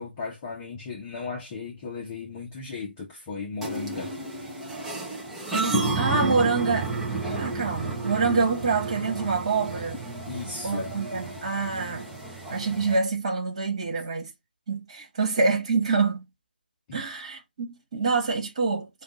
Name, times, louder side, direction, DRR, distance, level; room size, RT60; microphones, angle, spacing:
voice 1, 0.0-4.1 10.2-10.9 16.9-17.1, left 4 dB, 20° left, 0.8 m, -36 dB
sound 1, 3.6-13.0, right 3 dB, 5° right, 0.5 m, -31 dB
voice 2, 5.5-6.9 7.4-10.0 10.6-12.1 12.5-14.3 14.7-16.2 16.9-18.9, right 4 dB, 30° right, 1.7 m, -26 dB
5.1 x 2.4 x 3.9 m
figure-of-eight pair, 160°, 6 cm